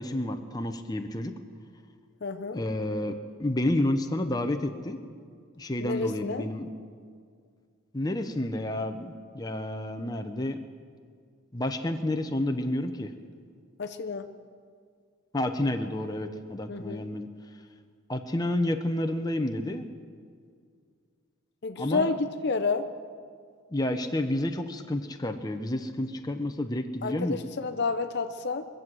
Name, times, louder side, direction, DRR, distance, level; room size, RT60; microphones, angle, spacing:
voice 1, 0.0-1.3 2.5-5.0 5.6-6.7 7.9-10.6 11.5-13.1 15.3-17.3 18.1-19.9 21.8-22.1 23.7-27.4, left 1 dB, 20° left, 6 dB, 0.7 m, -30 dB
voice 2, 2.2-2.6 5.8-6.5 13.8-14.3 16.7-17.0 21.6-22.9 27.0-28.7, left 4 dB, 50° left, 7 dB, 0.6 m, -30 dB
23.0 x 7.9 x 7.5 m, 2.1 s
head